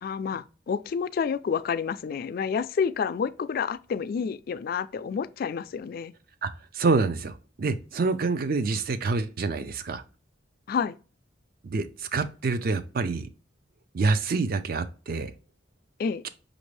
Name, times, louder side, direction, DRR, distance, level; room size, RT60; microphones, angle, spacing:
voice 1, 0.0-6.1 10.7-11.0 16.0-16.2, left 6 dB, 50° left, 0.3 m, -29 dB
voice 2, 6.7-10.0 11.6-13.3 13.9-15.3 16.2-16.3, right 4 dB, 50° right, 0.5 m, -27 dB
5.9 x 2.6 x 3.2 m
head